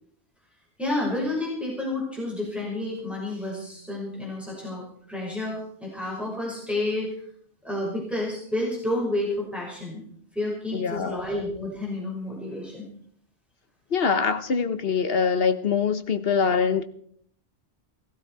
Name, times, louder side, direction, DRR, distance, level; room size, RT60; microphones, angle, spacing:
voice 1, 0.8-7.1 7.6-10.0 10.3-12.9, left 1 dB, ahead, -4 dB, 5.8 m, -30 dB
voice 2, 10.7-11.2 13.9-16.8, left 6 dB, 55° left, 11 dB, 1.2 m, -24 dB
16.5 x 15.5 x 4.8 m, 0.63 s
omnidirectional pair, 1.2 m